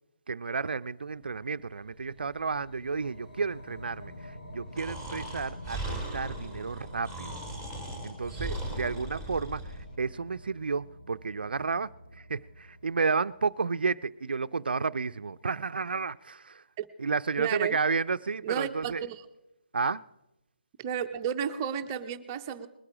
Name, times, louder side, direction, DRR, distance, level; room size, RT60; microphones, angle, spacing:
voice 1, 0.3-7.4 8.0-16.6 17.0-19.0 19.7-20.0, right 4 dB, 80° right, 0.4 m, -32 dB
sound 1, 1.1-13.6, left 1 dB, 65° left, 6.9 m, -48 dB
Breathing, 4.8-9.9, right 1 dB, 15° left, 3.1 m, -38 dB
voice 2, 17.4-17.8 18.4-19.2 20.8-22.7, right 8 dB, 20° right, 0.6 m, -32 dB
21.0 x 8.6 x 5.0 m
hypercardioid pair, 160°, 5 cm